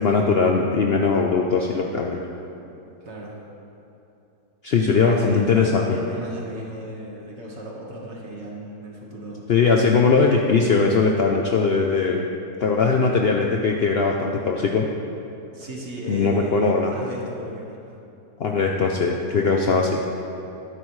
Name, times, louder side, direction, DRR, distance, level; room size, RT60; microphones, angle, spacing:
voice 1, 0.0-2.2 4.6-6.0 9.5-12.3 12.6-14.9 16.1-16.9 18.4-20.0, left 4 dB, 90° left, 1 dB, 0.5 m, -20 dB
voice 2, 3.0-3.4 4.8-9.4 15.5-18.0 19.7-19.9, equal, 45° right, -2 dB, 1.7 m, -36 dB
12.5 x 9.9 x 3.2 m, 2.9 s
omnidirectional pair, 1.8 m